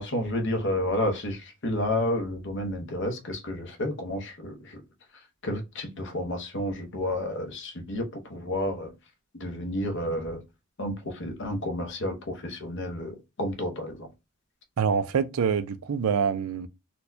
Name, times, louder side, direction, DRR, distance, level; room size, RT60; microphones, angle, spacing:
voice 1, 0.0-4.8 5.4-8.9 9.4-10.4 10.8-14.1, left 1 dB, 55° left, 0.9 m, -31 dB
voice 2, 14.8-16.7, right 6 dB, 70° right, 0.4 m, -25 dB
4.2 x 2.2 x 2.6 m
head